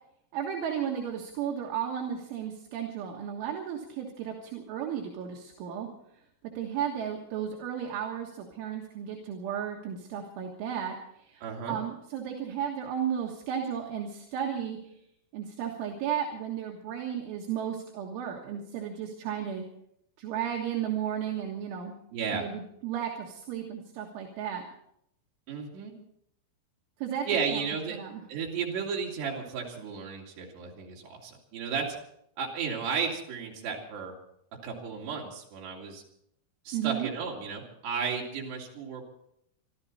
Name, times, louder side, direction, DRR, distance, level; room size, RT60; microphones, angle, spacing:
voice 1, 0.3-5.9 6.6-15.0 15.3-19.7 20.2-21.9 22.3-24.6 27.0-27.3 27.5-28.2 36.7-37.1, right 9 dB, 75° right, 0 dB, 3.9 m, -34 dB
voice 2, 11.4-11.8 22.1-22.5 25.5-25.9 27.3-28.0 28.3-31.9 32.4-34.1 34.6-36.0 36.7-39.0, right 6 dB, 60° right, -1 dB, 4.8 m, -33 dB
26.0 x 13.0 x 4.2 m, 0.76 s
omnidirectional pair, 5.7 m